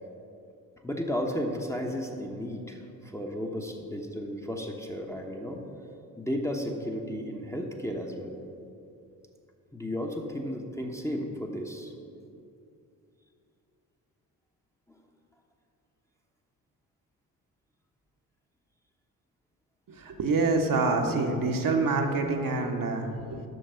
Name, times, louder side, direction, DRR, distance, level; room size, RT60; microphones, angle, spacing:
voice 1, 0.8-5.6 6.2-8.4 9.7-11.9 14.9-15.0, equal, 5° left, 1 dB, 1.0 m, -34 dB
voice 2, 19.9-23.4, right 3 dB, 40° right, 3 dB, 1.1 m, -26 dB
7.8 x 6.4 x 5.6 m, 2.6 s
figure-of-eight pair, 40°, 49 cm